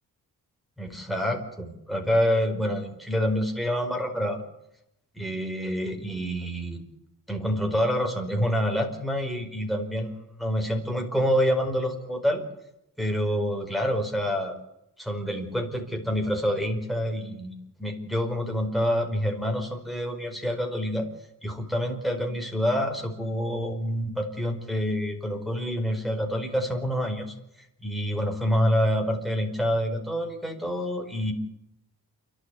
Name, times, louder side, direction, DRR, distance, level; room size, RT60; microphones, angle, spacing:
voice 1, 0.8-4.4 5.1-6.8 7.3-12.4 13.0-14.6 15.0-17.5 17.8-21.1 21.4-27.3 27.8-31.3, equal, ahead, 3 dB, 4.9 m, -27 dB
29.0 x 12.0 x 9.6 m, 0.82 s
cardioid pair, 125°, 37 cm